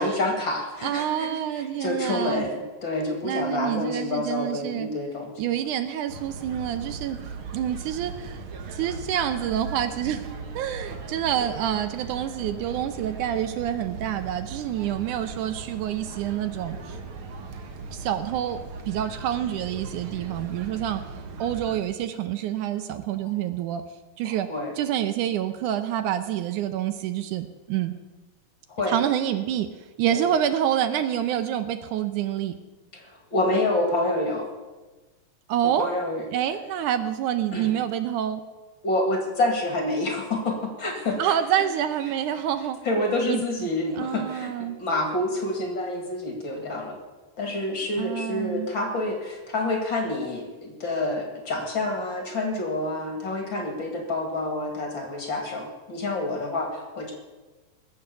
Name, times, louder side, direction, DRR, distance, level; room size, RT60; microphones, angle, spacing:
voice 1, 0.0-5.5 24.2-24.8 28.7-29.0 30.1-30.4 32.9-34.5 35.6-36.6 37.5-37.7 38.8-41.3 42.8-47.0 47.4-57.1, left 2 dB, 40° left, 3 dB, 2.4 m, -28 dB
voice 2, 0.8-2.5 3.2-4.9 5.4-7.2 7.5-8.4 8.7-10.3 10.5-17.0 17.9-18.6 18.9-21.0 21.4-23.8 24.2-24.5 24.8-27.9 28.9-29.7 30.0-32.6 35.5-35.9 36.3-38.4 41.2-42.8 43.3-43.7 44.0-44.8 48.0-48.7, right 10 dB, 75° right, 10 dB, 2.2 m, -27 dB
sound 1, 6.1-21.8, right 3 dB, 55° right, 1.6 m, -38 dB
20.5 x 7.8 x 6.9 m, 1.2 s
omnidirectional pair, 3.7 m